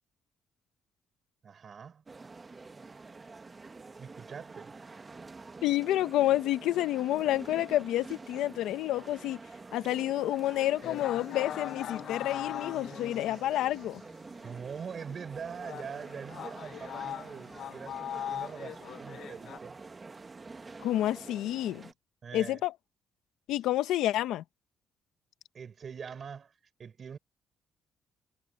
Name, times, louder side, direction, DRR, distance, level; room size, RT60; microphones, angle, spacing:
voice 1, 1.4-2.0 4.0-4.8 12.9-13.0 14.4-19.8 22.2-22.6 25.5-27.2, right 6 dB, 50° right, 6.6 m, -43 dB
Before event, 2.1-21.9, right 3 dB, 30° right, 1.5 m, -47 dB
voice 2, 5.6-9.4 9.7-14.0 20.8-21.9 22.3-22.7 23.5-24.4, left 14 dB, 85° left, 1.0 m, -29 dB
sound 1, 10.8-14.0 14.5-14.6 15.1-15.2 15.6-19.6, left 10 dB, 70° left, 6.8 m, -40 dB
cardioid pair, 90°, 0 cm